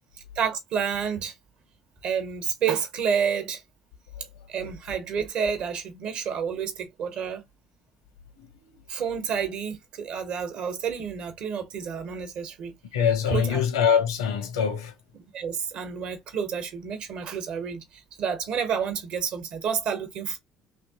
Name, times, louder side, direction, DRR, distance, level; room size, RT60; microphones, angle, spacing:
voice 1, 0.3-1.3 2.0-3.6 4.5-7.4 8.9-12.7 13.3-13.6 15.2-20.4, right 7 dB, 60° right, 1.1 m, -29 dB
voice 2, 12.9-14.9, left 7 dB, 85° left, 0.9 m, -24 dB
3.1 x 2.9 x 2.8 m
hypercardioid pair, 60°, 2 cm